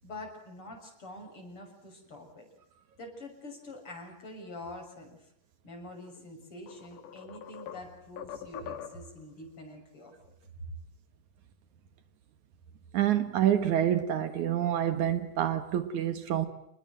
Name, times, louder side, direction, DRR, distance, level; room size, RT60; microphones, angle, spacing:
voice 1, 0.0-2.5 3.0-5.2 5.6-10.1 10.6-10.7, left 1 dB, 40° left, 7.7 m, -45 dB
sound 1, 6.1-6.2 6.7-9.2, left 9 dB, 85° left, 3.3 m, -43 dB
voice 2, 12.9-16.5, right 10 dB, 70° right, 2.8 m, -27 dB
28.0 x 20.5 x 7.7 m
omnidirectional pair, 3.6 m